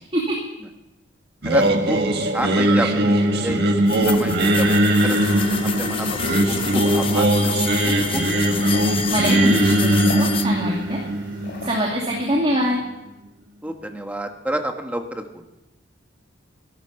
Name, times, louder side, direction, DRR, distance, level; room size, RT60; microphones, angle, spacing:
voice 1, 1.4-2.0 2.3-3.6 3.9-5.2 5.8-6.1 6.5-8.6 13.6-15.4, right 1 dB, 10° right, 4 dB, 1.3 m, -29 dB
Singing, 1.4-12.5, right 1 dB, 55° right, 1.7 m, -20 dB
sound 1, 3.9-10.5, left 7 dB, 30° left, 0.7 m, -29 dB
sound 2, 4.7-11.8, left 2 dB, 60° left, 3.6 m, -36 dB
voice 2, 9.1-11.0 11.6-12.8, equal, 30° right, -2 dB, 2.5 m, -23 dB
15.0 x 12.0 x 7.0 m, 0.94 s
head